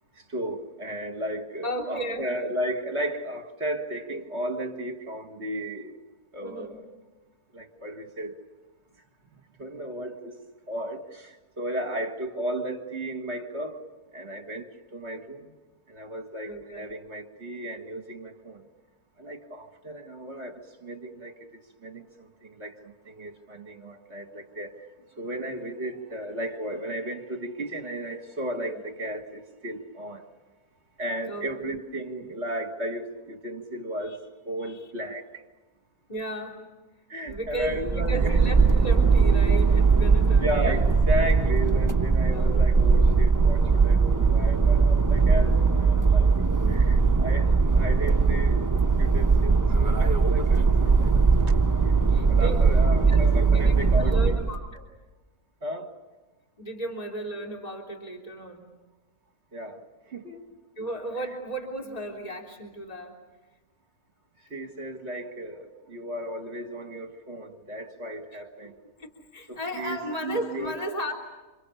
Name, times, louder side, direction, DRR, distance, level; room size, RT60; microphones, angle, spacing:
voice 1, 0.3-6.0 6.3-6.9 7.5-8.3 9.6-10.4 10.7-13.8 14.1-15.5 15.9-18.6 19.2-21.3 21.8-24.7 25.2-30.3 31.0-35.4 37.1-38.4 40.4-46.3 46.7-48.6 49.0-49.6 49.9-51.1 51.8-52.0 52.3-54.4 55.6-55.9 59.5-60.4 64.5-68.7 69.5-70.8, right 1 dB, 45° right, 5 dB, 1.9 m, -34 dB
voice 2, 1.6-2.3 6.4-6.8 16.4-16.8 28.7-28.8 31.2-31.5 34.6-34.8 36.1-36.6 37.3-40.8 42.3-42.5 46.6-46.9 51.8-52.8 53.1-53.3 53.5-54.8 56.6-58.7 60.8-63.2 68.3-68.4 69.0-71.1, right 1 dB, 25° left, 0 dB, 3.4 m, -35 dB
sound 1, 37.3-54.6, right 4 dB, 20° right, 0.5 m, -20 dB
28.5 x 27.0 x 7.0 m, 1.2 s
omnidirectional pair, 1.6 m